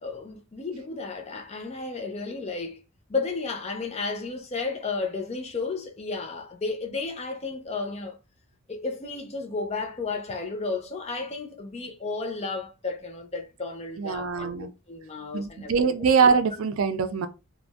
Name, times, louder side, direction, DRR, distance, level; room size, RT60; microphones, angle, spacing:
voice 1, 0.0-2.8 3.1-8.2 8.7-15.9, left 4 dB, 30° left, 0.5 m, -33 dB
voice 2, 14.0-14.7 15.3-17.3, right 5 dB, 85° right, 0.4 m, -23 dB
2.4 x 2.1 x 3.3 m
head